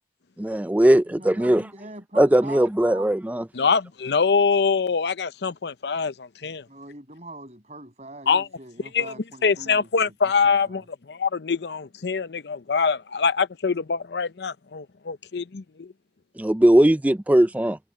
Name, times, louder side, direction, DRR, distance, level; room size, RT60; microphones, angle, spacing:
voice 1, 0.4-1.6 2.2-3.4 16.4-17.8, right 1 dB, 10° right, 0.3 m, -19 dB
voice 2, 1.0-3.2 6.7-10.9, right 2 dB, 40° right, 6.6 m, -42 dB
voice 3, 3.5-6.6 8.3-8.4 8.9-9.1 9.4-10.8 11.1-15.9, left 5 dB, 70° left, 0.6 m, -24 dB
head